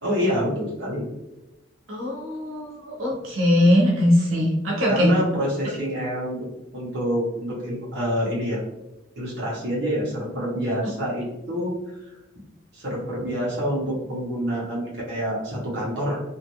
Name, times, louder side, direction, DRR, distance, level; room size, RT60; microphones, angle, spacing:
voice 1, 0.0-1.0 4.9-6.5 6.7-8.6 9.2-11.7 12.7-16.2, equal, 55° right, -6 dB, 1.0 m, -27 dB
voice 2, 1.9-5.1, left 1 dB, 85° right, -3 dB, 0.9 m, -21 dB
3.0 x 2.5 x 2.9 m, 0.93 s
head